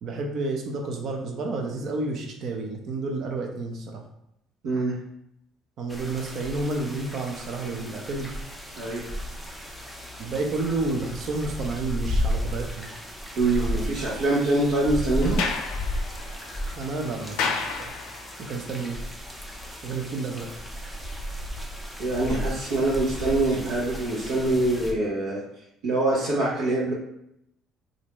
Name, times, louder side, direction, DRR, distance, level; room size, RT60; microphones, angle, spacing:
voice 1, 0.0-4.0 5.8-8.3 10.2-12.9 16.8-17.9 18.5-19.0 19.8-20.5, right 3 dB, 55° right, 1 dB, 0.7 m, -30 dB
voice 2, 4.6-4.9 8.8-9.1 13.4-15.4 22.0-25.4 25.8-26.9, right 2 dB, 80° right, -8 dB, 0.9 m, -24 dB
sound 1, 5.9-24.9, equal, ahead, 0.6 m, -34 dB
Sliding door, 15.2-18.5, left 5 dB, 80° left, 0.4 m, -32 dB
3.3 x 2.6 x 3.0 m, 0.80 s
cardioid pair, 105°, 0 cm